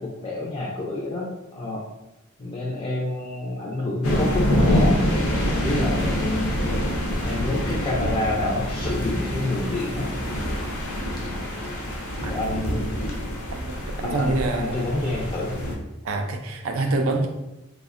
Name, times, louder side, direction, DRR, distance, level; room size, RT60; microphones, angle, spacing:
voice 1, 0.0-1.9 2.4-6.9 7.2-10.1 12.3-12.9 14.0-15.6, left 2 dB, 25° left, -4 dB, 0.3 m, -28 dB
sound 1, 4.0-15.7, equal, 90° left, 0.6 m, -26 dB
voice 2, 13.5-15.1 16.0-17.3, right 2 dB, 85° right, 4 dB, 0.4 m, -26 dB
3.3 x 2.0 x 2.4 m, 0.97 s
head